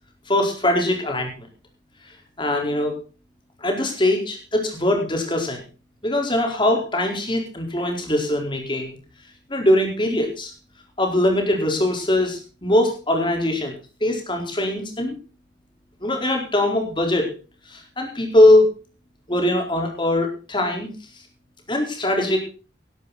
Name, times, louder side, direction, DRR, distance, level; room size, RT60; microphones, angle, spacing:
voice 1, 0.3-1.5 2.4-3.0 3.6-5.6 6.0-9.0 9.5-10.5 11.0-13.7 14.0-15.2 16.0-17.3 17.7-18.7 19.3-20.9 21.7-22.4, left 1 dB, 25° left, 3 dB, 4.4 m, -21 dB
18.5 x 11.5 x 4.2 m, 0.35 s
head